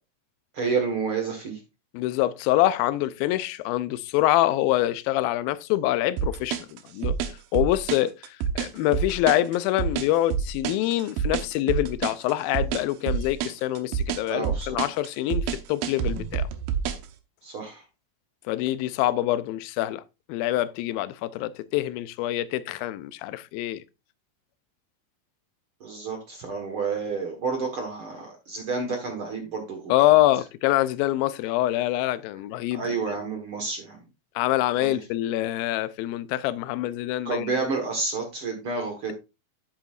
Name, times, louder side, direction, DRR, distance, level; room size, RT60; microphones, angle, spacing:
voice 1, 0.5-1.6 14.3-14.7 17.4-17.8 25.8-29.9 32.7-34.0 34.8-35.0 37.2-39.1, right 4 dB, 55° right, 1.7 m, -30 dB
voice 2, 1.9-7.2 7.5-8.1 8.6-16.5 18.5-20.0 20.3-23.8 29.9-33.2 34.4-37.6, left 15 dB, 85° left, 2.4 m, -25 dB
sound 1, 6.2-17.1, right 7 dB, 80° right, 2.7 m, -28 dB
10.0 x 8.0 x 2.4 m
omnidirectional pair, 4.1 m